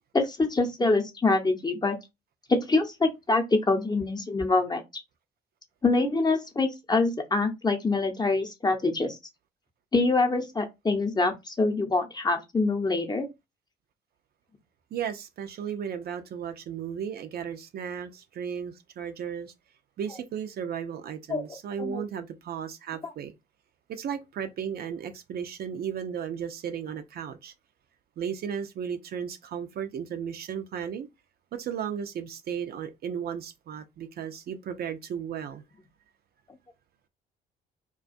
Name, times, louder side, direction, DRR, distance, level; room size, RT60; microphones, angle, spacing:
voice 1, 0.1-2.0 2.5-4.8 5.8-9.2 9.9-13.3 21.3-21.4 21.8-22.0 23.0-23.1, left 3 dB, 20° left, 0.7 m, -25 dB
voice 2, 14.9-19.5 20.0-23.3 23.9-27.5 28.2-31.1 31.5-35.6, right 8 dB, 50° right, 0.5 m, -35 dB
2.4 x 2.2 x 2.5 m
hypercardioid pair, 55°, 20 cm